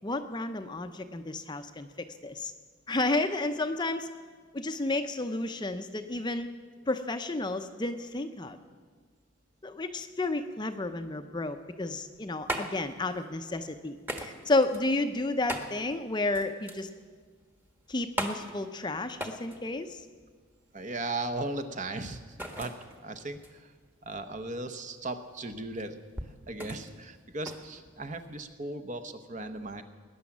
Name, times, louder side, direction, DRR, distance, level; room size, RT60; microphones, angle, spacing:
voice 1, 0.0-2.5 2.9-4.1 4.5-6.5 6.9-8.6 9.6-16.9 17.9-20.0, left 2 dB, 20° left, 8 dB, 0.6 m, -31 dB
sound 1, 12.0-28.5, equal, 10° right, 1.2 m, -41 dB
voice 2, 20.7-23.7 24.0-26.0 26.5-29.8, right 2 dB, 35° right, 7 dB, 0.9 m, -37 dB
20.0 x 10.0 x 7.2 m, 1.5 s
head